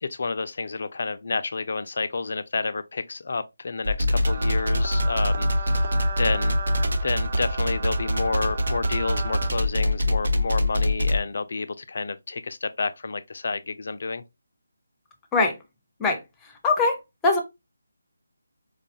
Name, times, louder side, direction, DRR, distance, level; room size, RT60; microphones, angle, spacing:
voice 1, 0.0-6.6 7.0-14.2, left 4 dB, 55° left, 0.4 m, -30 dB
sound 1, 3.8-11.2, left 1 dB, 70° right, 0.8 m, -23 dB
sound 2, 4.3-9.5, right 5 dB, 40° right, 0.4 m, -35 dB
voice 2, 16.0-17.4, left 3 dB, 10° left, 0.6 m, -23 dB
4.6 x 2.3 x 2.7 m
figure-of-eight pair, 160°, 0 cm